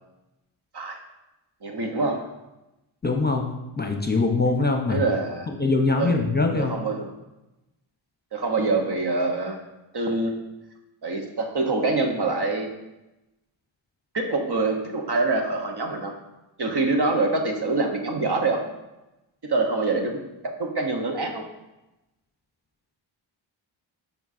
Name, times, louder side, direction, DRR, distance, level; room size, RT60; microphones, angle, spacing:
voice 1, 1.6-2.2 4.9-5.5 6.0-6.1 6.6-7.1 8.3-9.6 9.9-10.4 11.0-12.7 14.1-16.1 16.6-18.6 19.4-21.4, right 3 dB, 55° right, 3 dB, 1.1 m, -25 dB
voice 2, 3.0-5.0 5.6-6.7, left 3 dB, 20° left, 3 dB, 0.9 m, -23 dB
7.1 x 5.3 x 2.7 m, 0.97 s
cardioid pair, 45°, 48 cm